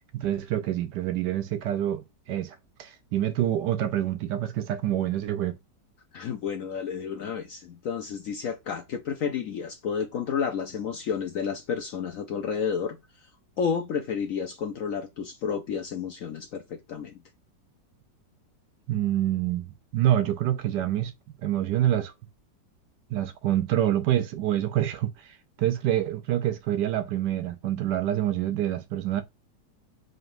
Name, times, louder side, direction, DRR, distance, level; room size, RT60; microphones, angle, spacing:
voice 1, 0.1-5.6 18.9-19.7 19.9-21.1 21.4-22.1 23.1-29.2, right 12 dB, 70° right, 1.2 m, -27 dB
voice 2, 6.1-13.0 13.6-17.2, left 6 dB, 65° left, 0.8 m, -31 dB
3.9 x 3.4 x 2.6 m
omnidirectional pair, 2.0 m